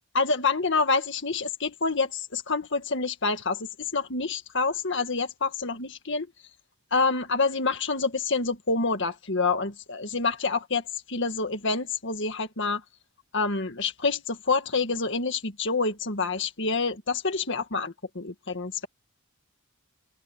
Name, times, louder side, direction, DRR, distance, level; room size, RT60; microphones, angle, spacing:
voice 1, 0.1-6.3 6.9-12.8 13.3-18.9, left 4 dB, 55° left, 1.9 m, -27 dB
head